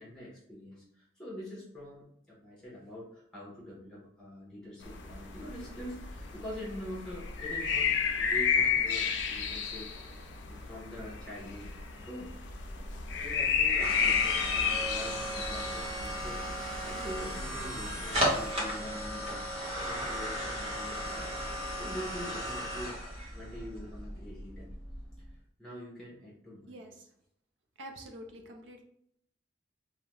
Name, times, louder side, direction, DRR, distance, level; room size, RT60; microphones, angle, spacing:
voice 1, 0.0-7.9 8.2-11.7 12.1-12.4 12.8-23.0 23.3-24.7 25.6-26.8, left 1 dB, 5° left, -5 dB, 0.7 m, -45 dB
sound 1, 4.8-18.5, left 6 dB, 70° left, 0.4 m, -32 dB
sound 2, 12.3-25.3, equal, 35° right, 0.8 m, -36 dB
voice 2, 26.7-27.1 27.8-28.8, equal, 80° right, 3 dB, 0.5 m, -47 dB
2.3 x 2.1 x 2.9 m, 0.71 s
head